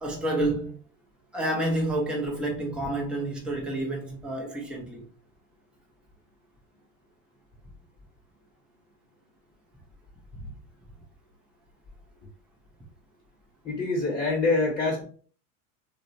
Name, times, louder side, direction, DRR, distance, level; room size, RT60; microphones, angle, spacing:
voice 1, 0.0-0.8 1.3-5.1, right 1 dB, 5° right, 0.3 m, -29 dB
voice 2, 13.6-15.0, left 3 dB, 15° left, 0.7 m, -25 dB
2.9 x 2.0 x 2.5 m
supercardioid pair, 115°, 45 cm